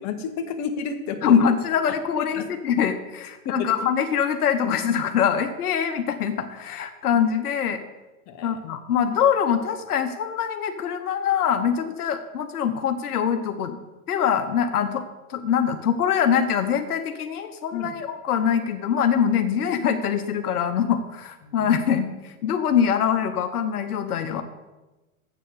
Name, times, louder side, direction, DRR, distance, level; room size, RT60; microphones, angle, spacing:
voice 1, 0.0-1.4 2.1-2.5 3.4-3.7 8.3-8.6 17.7-17.9 21.4-21.7, left 6 dB, 40° left, 6 dB, 1.4 m, -31 dB
voice 2, 1.2-7.8 8.4-13.8 14.1-15.0 15.3-24.4, left 8 dB, 80° left, 8 dB, 1.0 m, -23 dB
7.7 x 7.4 x 6.8 m, 1.1 s
hypercardioid pair, 110°, 44 cm